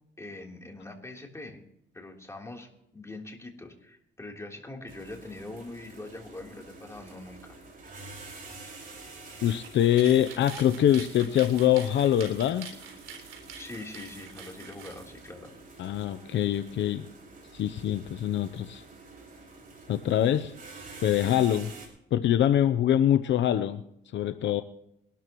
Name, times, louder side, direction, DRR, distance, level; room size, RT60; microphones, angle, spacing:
voice 1, 0.2-1.6 1.9-7.5 13.5-15.5, left 2 dB, 15° left, 0 dB, 3.5 m, -43 dB
sound 1, 4.9-21.9, right 3 dB, 45° right, 5.7 m, -48 dB
voice 2, 9.4-12.7 15.8-17.1 17.5-18.8 19.9-20.5 21.0-21.7 22.1-23.8 24.1-24.6, left 11 dB, 65° left, 11 dB, 0.7 m, -24 dB
sound 2, 9.6-15.1, right 7 dB, 85° right, 3.9 m, -45 dB
22.5 x 13.0 x 3.1 m, 0.78 s
cardioid pair, 90°, 20 cm